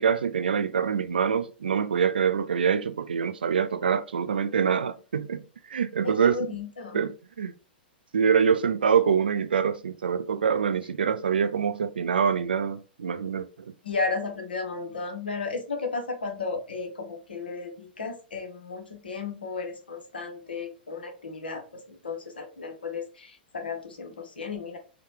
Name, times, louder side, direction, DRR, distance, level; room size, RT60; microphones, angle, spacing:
voice 1, 0.0-5.4 5.7-6.4 6.9-7.1 7.4-7.5 8.1-13.5, right 7 dB, 70° right, 0.3 m, -25 dB
voice 2, 6.0-7.0 13.8-24.8, left 4 dB, 75° left, 0.8 m, -34 dB
3.9 x 2.2 x 3.1 m
figure-of-eight pair, 105°, 5 cm